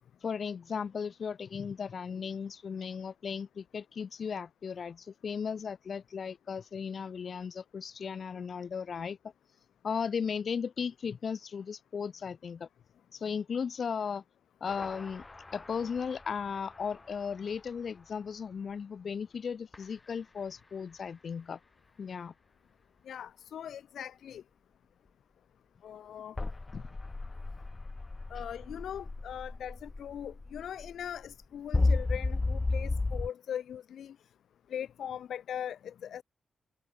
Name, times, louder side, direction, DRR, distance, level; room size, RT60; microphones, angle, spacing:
voice 1, 0.2-9.2 9.8-12.7 13.1-14.2 14.6-15.2 15.5-21.6 22.0-22.3 26.7-26.8, left 6 dB, 60° left, 2.8 m, -36 dB
sound 1, 14.7-17.2 19.7-19.8 26.4-33.3, left 3 dB, 30° left, 4.1 m, -34 dB
voice 2, 23.0-24.4 25.8-26.4 28.3-34.2 34.7-36.2, left 9 dB, 85° left, 2.3 m, -40 dB
cardioid pair, 70°, 0 cm